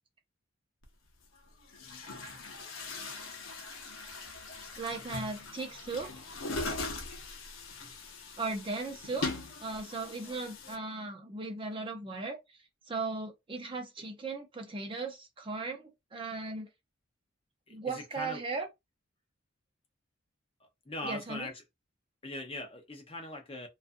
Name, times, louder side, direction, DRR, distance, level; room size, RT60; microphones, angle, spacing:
Chatter / Gurgling / Tap, 0.8-0.9 1.6-10.8, left 3 dB, 75° left, 0.7 m, -41 dB
voice 1, 4.8-6.1 8.4-9.3 9.6-16.7 17.7-18.7 21.0-21.5, right 3 dB, 25° right, 0.5 m, -37 dB
voice 2, 17.7-18.4 20.6-21.6 22.2-23.7, left 1 dB, 25° left, 0.6 m, -41 dB
2.5 x 2.3 x 2.5 m
head